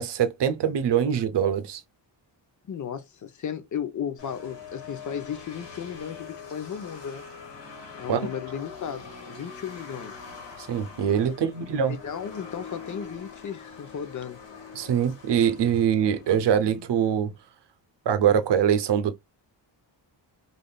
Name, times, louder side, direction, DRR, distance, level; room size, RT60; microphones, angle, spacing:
voice 1, 0.0-1.8 8.1-8.2 10.7-12.0 14.7-17.3 18.1-19.1, right 8 dB, 65° right, 0.7 m, -23 dB
voice 2, 2.6-7.2 8.0-10.2 11.3-11.4 11.9-14.4, left 8 dB, 40° left, 0.6 m, -35 dB
sound 1, 4.2-17.2, left 5 dB, 65° left, 1.3 m, -43 dB
3.4 x 2.5 x 2.3 m
wide cardioid pair, 140°, 45 cm